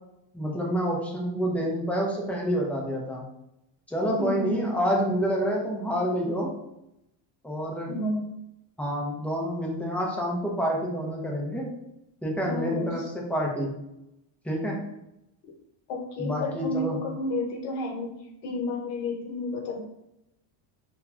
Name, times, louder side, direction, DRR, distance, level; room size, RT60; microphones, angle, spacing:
voice 1, 0.3-3.2 3.9-6.5 7.4-7.9 8.8-11.7 12.2-13.7 14.4-14.8 16.2-17.0, equal, 5° left, -2 dB, 0.4 m, -28 dB
voice 2, 4.2-4.7 7.9-8.3 12.5-13.0 15.9-19.8, left 2 dB, 75° left, 3 dB, 0.8 m, -31 dB
2.9 x 2.2 x 2.4 m, 0.85 s
supercardioid pair, 110°, 49 cm